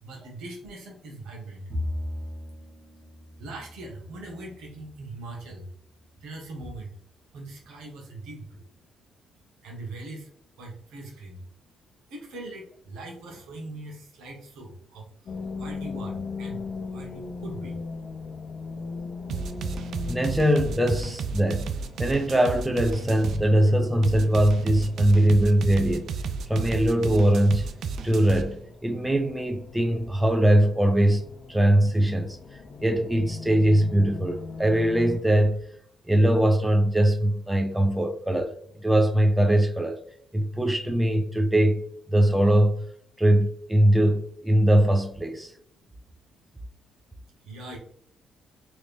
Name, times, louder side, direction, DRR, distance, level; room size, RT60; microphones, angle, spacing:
voice 1, 0.0-1.7 3.4-5.7 6.2-6.9 7.3-8.6 9.6-10.3 10.6-11.4 12.1-16.6 16.9-17.8 47.4-47.8, right 2 dB, 85° right, 1.1 m, -41 dB
Bowed string instrument, 1.7-5.2, left 1 dB, 40° right, 0.9 m, -37 dB
sound 1, 15.3-35.2, left 4 dB, 50° left, 0.5 m, -40 dB
sound 2, 19.3-23.4 24.0-28.4, right 5 dB, 70° right, 0.3 m, -32 dB
voice 2, 20.1-21.7 22.0-26.1 26.5-27.7 28.0-35.6 36.1-38.5 38.8-40.0 40.3-42.9 43.2-45.5, right 1 dB, 5° right, 0.6 m, -21 dB
3.1 x 2.6 x 3.4 m
cardioid pair, 90°, 0 cm